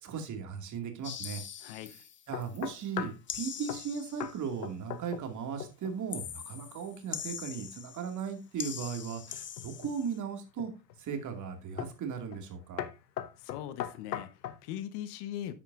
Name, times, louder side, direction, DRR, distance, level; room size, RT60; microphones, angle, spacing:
voice 1, 0.0-1.4 2.3-10.7 11.0-12.9, right 6 dB, 35° right, 2.4 m, -37 dB
sound 1, 1.0-2.7 3.3-4.5 6.1-8.3 8.6-10.2, left 9 dB, 25° left, 0.8 m, -42 dB
sound 2, 2.3-3.3 3.7-3.9 4.2-4.4 4.6-5.3 5.6-6.0 9.3-10.0 10.6-11.0 11.8-12.0 12.3-12.5 12.8-14.6, left 10 dB, 90° left, 1.0 m, -39 dB
voice 2, 13.4-15.5, left 11 dB, 50° left, 1.2 m, -40 dB
10.0 x 8.3 x 2.6 m
hypercardioid pair, 90°, 49 cm